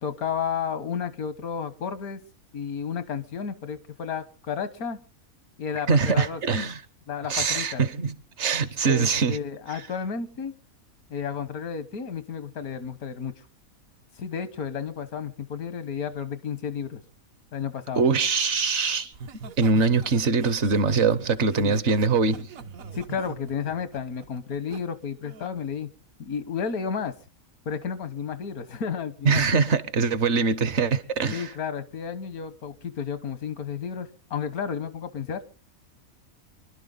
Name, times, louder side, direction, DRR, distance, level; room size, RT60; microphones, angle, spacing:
voice 1, 0.0-2.2 2.5-5.0 5.6-6.6 7.1-7.8 8.8-10.5 11.1-13.3 14.2-17.0 17.5-18.0 21.6-21.8 22.9-25.9 26.2-27.1 27.6-29.5 31.3-35.4, left 7 dB, 90° left, 1.6 m, -32 dB
voice 2, 5.9-6.8 7.3-9.4 18.0-19.1 19.6-22.5 29.2-31.5, right 4 dB, 55° right, 1.1 m, -23 dB
Laughter, 19.1-24.8 25.2-25.5, right 5 dB, 75° right, 1.4 m, -42 dB
25.0 x 12.0 x 3.9 m
omnidirectional pair, 1.5 m